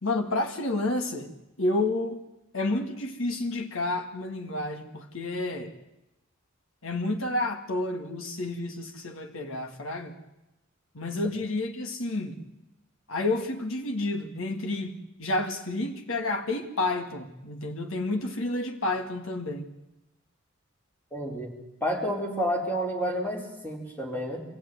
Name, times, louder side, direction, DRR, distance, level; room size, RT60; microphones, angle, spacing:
voice 1, 0.0-2.2 2.5-5.7 6.8-10.1 10.9-12.4 13.1-19.7, left 2 dB, 85° left, 4 dB, 2.1 m, -30 dB
voice 2, 21.1-24.4, equal, 10° left, 0 dB, 4.5 m, -30 dB
25.5 x 16.0 x 9.6 m, 0.91 s
head